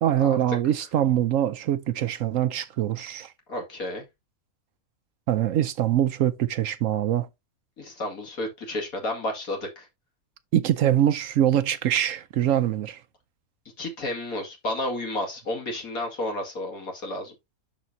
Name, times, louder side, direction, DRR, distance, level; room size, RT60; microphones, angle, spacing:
voice 1, 0.0-3.3 5.3-7.3 10.5-13.0, right 11 dB, 65° right, 0.9 m, -23 dB
voice 2, 3.5-4.1 7.8-9.9 13.8-17.3, left 1 dB, 70° left, 2.7 m, -31 dB
12.5 x 4.2 x 2.7 m
omnidirectional pair, 1.6 m